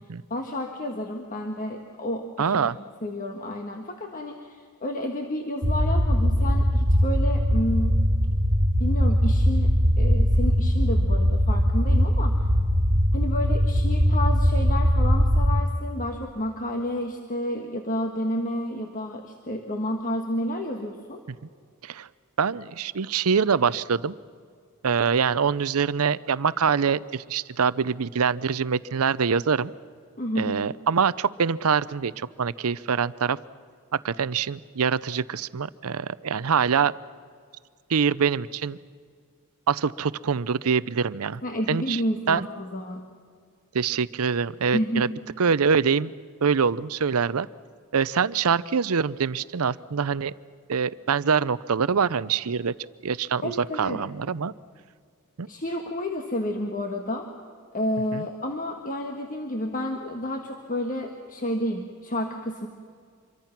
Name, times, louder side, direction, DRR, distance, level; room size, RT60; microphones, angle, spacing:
voice 1, 0.3-2.7 3.0-8.0 8.8-12.4 13.1-21.2 30.2-30.6 41.4-43.0 44.7-45.2 53.4-54.0 55.5-57.3 57.7-62.7, left 1 dB, 40° left, 3 dB, 1.5 m, -30 dB
voice 2, 2.4-2.8 21.3-21.4 21.8-22.1 22.4-24.2 24.8-29.7 30.4-33.4 33.9-36.9 37.9-38.8 39.7-41.4 41.7-42.0 42.3-42.5 43.7-45.1 45.4-46.1 46.4-47.5 47.9-50.3 50.7-52.7 53.0-53.5 53.8-54.5 55.4-55.5 58.1-58.3, right 6 dB, 70° right, 17 dB, 0.6 m, -24 dB
sound 1, 5.6-15.6, equal, 40° right, 2.0 m, -21 dB
26.5 x 23.5 x 5.9 m, 2.1 s
head